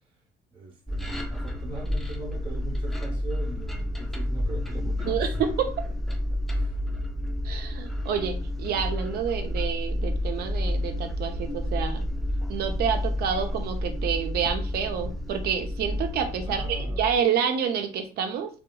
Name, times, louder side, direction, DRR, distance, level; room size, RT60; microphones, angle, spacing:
voice 1, 0.5-5.5 6.3-6.7 16.5-17.2, right 2 dB, 30° right, 0.8 m, -41 dB
sound 1, 0.9-17.2, left 1 dB, ahead, 0.4 m, -30 dB
voice 2, 5.1-5.7 7.4-12.0 12.5-18.5, right 7 dB, 70° right, 0.6 m, -28 dB
2.7 x 2.4 x 2.2 m
cardioid pair, 110°, 17 cm